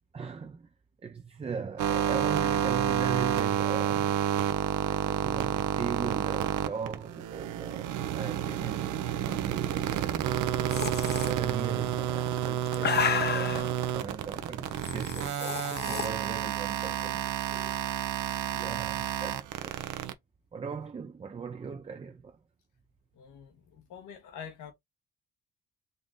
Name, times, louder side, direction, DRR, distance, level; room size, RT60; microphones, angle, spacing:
voice 1, 0.1-0.7 1.0-4.2 4.8-10.2 11.1-17.8 18.5-19.9 20.5-22.4, right 6 dB, 20° right, 0.4 m, -39 dB
sound 1, 1.8-20.1, right 10 dB, 80° right, 0.6 m, -30 dB
sound 2, 10.7-11.3 12.3-13.7 14.8-16.1, left 7 dB, 35° left, 0.6 m, -31 dB
voice 2, 23.2-24.7, left 8 dB, 85° left, 1.4 m, -46 dB
3.9 x 2.5 x 3.6 m
cardioid pair, 90°, 30 cm